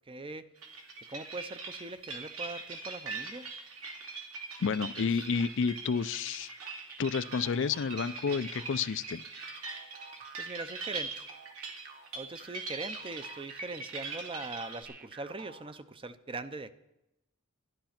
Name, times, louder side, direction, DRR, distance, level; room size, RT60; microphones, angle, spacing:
voice 1, 0.1-0.7 1.1-3.5 5.0-5.5 10.4-11.3 12.1-16.7, right 3 dB, 25° right, 12 dB, 0.6 m, -41 dB
sound 1, 0.6-14.8, right 4 dB, 70° right, 2.6 m, -42 dB
voice 2, 4.6-6.5 7.0-9.2, left 5 dB, 55° left, 15 dB, 0.4 m, -30 dB
sound 2, 6.6-15.8, right 4 dB, 40° right, 1.3 m, -51 dB
12.5 x 11.5 x 5.9 m, 0.88 s
head